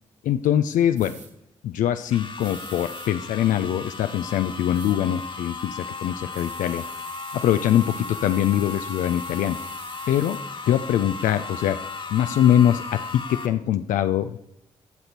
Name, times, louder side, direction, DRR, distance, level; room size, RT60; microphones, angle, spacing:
voice 1, 0.2-1.2 1.6-6.8 7.3-9.6 10.1-10.4 10.7-11.8 12.1-14.4, left 11 dB, 75° left, 10 dB, 0.5 m, -23 dB
sound 1, 1.0-1.3 2.4-3.1 4.7-5.0 6.3-10.4, right 4 dB, 60° right, 1.8 m, -46 dB
sound 2, 2.1-13.5, left 4 dB, 40° left, 1.4 m, -36 dB
12.5 x 6.6 x 4.3 m, 0.80 s
hypercardioid pair, 45°, 13 cm